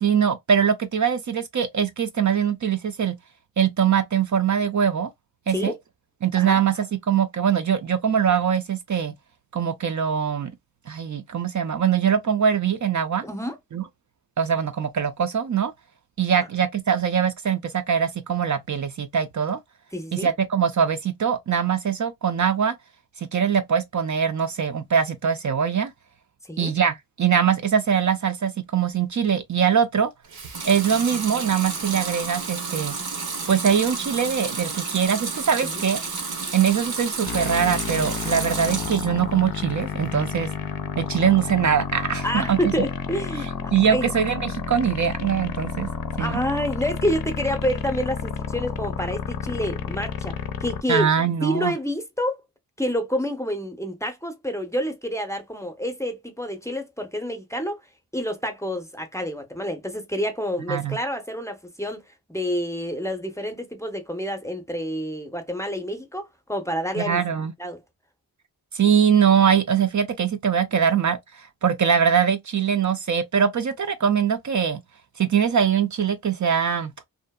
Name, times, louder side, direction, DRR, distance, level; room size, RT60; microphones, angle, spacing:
voice 1, 0.0-3.2 3.6-5.1 5.5-5.7 6.2-9.1 9.5-10.5 10.9-13.2 13.7-13.8 14.4-15.7 16.2-19.6 20.1-22.7 23.2-25.9 26.6-30.1 30.6-33.0 33.5-36.0 36.5-40.5 41.0-42.7 43.7-45.9 46.2-46.4 50.9-51.7 60.7-61.0 67.0-67.5 68.7-74.8 75.2-76.9, right 7 dB, 50° right, 0.5 m, -22 dB
voice 2, 13.2-13.6 19.9-20.3 26.4-26.7 35.6-35.9 40.2-40.4 42.2-44.1 46.2-50.3 50.6-51.1 51.4-52.4 52.8-57.8 58.1-62.0 62.3-67.2 67.6-67.8, equal, 10° left, 0.6 m, -28 dB
Water tap faucet / Sink (filling or washing) / Liquid, 30.2-39.2 39.6-40.3, right 4 dB, 80° right, 0.9 m, -31 dB
sound 1, 37.2-50.8, left 7 dB, 65° left, 0.5 m, -31 dB
2.7 x 2.4 x 2.2 m
wide cardioid pair, 80°, 37 cm